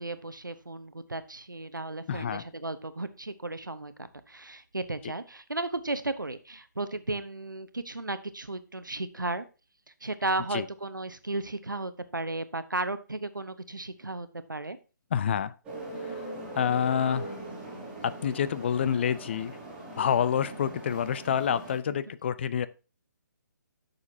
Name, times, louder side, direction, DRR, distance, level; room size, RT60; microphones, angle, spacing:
voice 1, 0.0-9.4 10.0-14.8, right 2 dB, 85° right, 12 dB, 0.9 m, -34 dB
voice 2, 2.1-2.4 10.5-10.7 15.1-15.5 16.0-17.4 18.0-19.6 20.0-22.7, left 8 dB, 35° left, 15 dB, 0.5 m, -28 dB
sound 1, 15.6-21.7, right 1 dB, 10° right, 3.1 m, -40 dB
10.5 x 6.7 x 2.7 m, 0.32 s
figure-of-eight pair, 140°, 10 cm